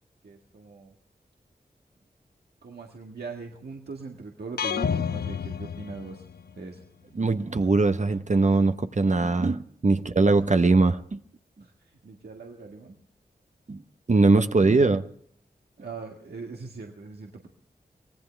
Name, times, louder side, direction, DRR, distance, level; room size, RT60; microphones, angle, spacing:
voice 1, 0.2-0.9 2.6-6.2 6.6-6.8 11.6-13.0 15.8-17.5, right 4 dB, 80° right, 1 dB, 1.8 m, -41 dB
sound 1, 4.6-6.6, left 7 dB, 80° left, 0.6 m, -30 dB
voice 2, 7.2-11.2 13.7-13.8 14.1-15.0, right 3 dB, 45° right, 9 dB, 1.0 m, -21 dB
24.0 x 17.5 x 3.4 m, 0.65 s
cardioid pair, 45°, 17 cm